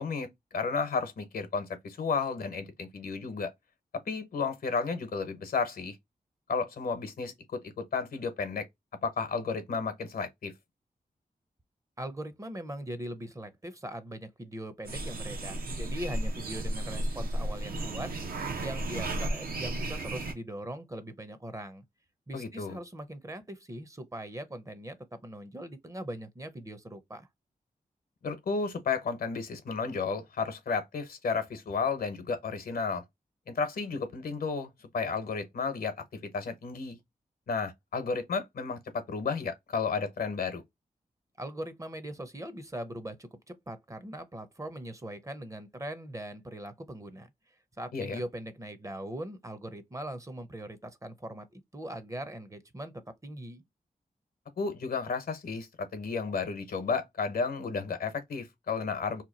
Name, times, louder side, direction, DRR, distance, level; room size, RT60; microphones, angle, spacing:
voice 1, 0.0-3.5 4.1-6.0 6.5-8.6 9.0-10.5 22.3-22.8 28.2-33.0 33.5-36.0 36.2-37.0 37.5-40.6 47.9-48.2 54.6-59.2, left 5 dB, 80° left, 0.8 m, -32 dB
voice 2, 12.0-18.1 18.6-21.8 22.3-27.3 41.4-47.3 47.8-52.9 53.2-53.6, right 1 dB, 20° right, 0.6 m, -41 dB
sound 1, 14.8-20.3, right 1 dB, 80° right, 0.8 m, -34 dB
2.9 x 2.3 x 3.8 m
wide cardioid pair, 85°, 15 cm